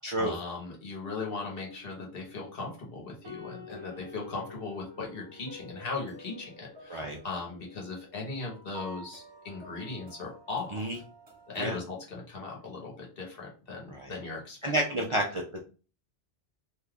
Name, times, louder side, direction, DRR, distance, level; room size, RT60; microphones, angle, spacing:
voice 1, 0.0-11.0 11.5-14.7, left 3 dB, 65° left, -1 dB, 1.2 m, -38 dB
sound 1, 1.0-11.6, left 2 dB, 25° right, 0.8 m, -50 dB
voice 2, 14.6-15.4, right 1 dB, 45° right, 0 dB, 0.4 m, -30 dB
2.7 x 2.3 x 3.4 m, 0.35 s
omnidirectional pair, 1.0 m